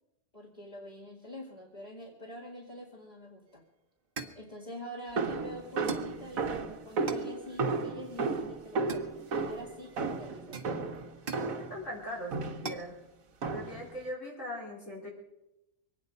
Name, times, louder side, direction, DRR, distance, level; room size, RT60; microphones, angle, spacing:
voice 1, 0.3-3.6 4.3-9.1 9.4-10.6, equal, 30° left, -3 dB, 2.5 m, -45 dB
sound 1, 3.5-3.6 4.2-4.5 5.9-6.2 7.1-7.4 8.9-9.5 10.5-11.6 12.6-12.9, right 4 dB, 45° right, 1.3 m, -41 dB
sound 2, 5.2-11.8 12.3-12.8 13.4-13.9, right 4 dB, 85° right, 1.6 m, -34 dB
voice 2, 11.7-13.0 13.5-15.1, left 1 dB, 65° left, -5 dB, 4.5 m, -40 dB
23.5 x 9.7 x 5.3 m, 0.91 s
omnidirectional pair, 1.4 m